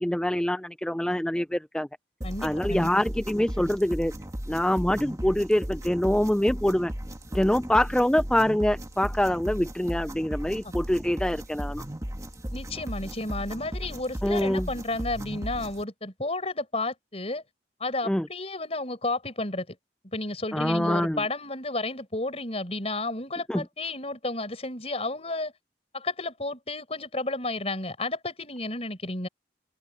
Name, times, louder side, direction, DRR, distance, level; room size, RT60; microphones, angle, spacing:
voice 1, 0.0-1.9 2.4-4.1 4.5-6.9 7.3-11.8 14.2-14.7 18.1-18.3 20.5-21.2 23.5-23.6, left 1 dB, 5° left, 0.4 m, -25 dB
voice 2, 2.2-2.9 10.6-10.7 12.5-17.4 17.8-19.8 20.1-25.5 25.9-29.3, left 2 dB, 35° left, 5.2 m, -32 dB
sound 1, 2.2-15.8, equal, 20° right, 1.7 m, -36 dB
open air
head